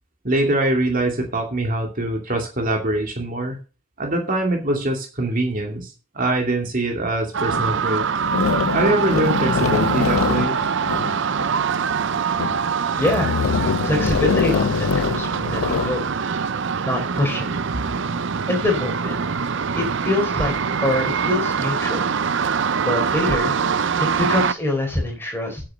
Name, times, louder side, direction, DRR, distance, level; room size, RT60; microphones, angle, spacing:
voice 1, 0.2-3.6 4.0-8.1 8.7-10.6, right 1 dB, 40° right, 2 dB, 2.7 m, -23 dB
atmos bridge, 7.3-24.5, right 6 dB, 60° right, 0.6 m, -24 dB
sound 1, 7.5-7.6 8.3-11.5 12.1-12.6 13.0-16.0, left 5 dB, 80° left, 0.5 m, -23 dB
voice 2, 13.0-13.3 13.8-16.0 16.8-17.5 18.5-19.2 19.7-20.5 20.8-22.1 22.8-23.5 24.0-25.6, left 2 dB, 10° left, 1 dB, 4.3 m, -24 dB
9.2 x 7.7 x 6.5 m, 0.33 s
head